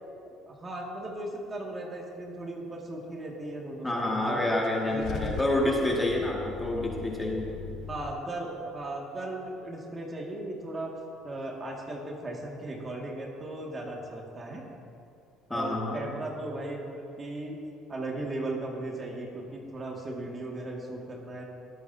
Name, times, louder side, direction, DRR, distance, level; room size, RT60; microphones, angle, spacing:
voice 1, 0.5-4.4 4.9-5.4 7.9-11.0 11.2-14.6 15.5-17.5 17.9-21.4, right 2 dB, 35° right, -1 dB, 2.2 m, -37 dB
voice 2, 3.8-7.5 15.5-16.0, left 1 dB, 15° left, -2 dB, 2.2 m, -28 dB
Car / Engine starting / Idling, 4.6-8.1, left 7 dB, 60° left, 0.7 m, -40 dB
18.5 x 8.7 x 2.8 m, 2.5 s
hypercardioid pair, 70°, 0 cm